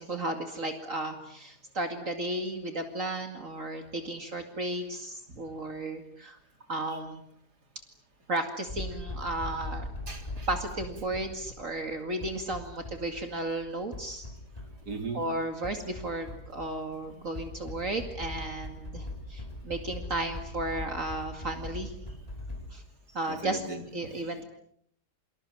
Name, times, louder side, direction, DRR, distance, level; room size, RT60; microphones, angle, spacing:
voice 1, 0.0-6.4 6.7-7.2 8.3-9.9 10.5-14.3 15.1-21.9 22.7-22.8 23.1-23.6 23.9-24.4, right 2 dB, 55° right, 6 dB, 2.7 m, -34 dB
sound 1, 8.7-22.7, left 1 dB, 25° left, 3.5 m, -41 dB
voice 2, 10.1-10.5 14.9-15.2 23.3-24.4, right 3 dB, 90° right, 5 dB, 4.4 m, -39 dB
28.5 x 26.0 x 7.4 m, 0.67 s
omnidirectional pair, 1.7 m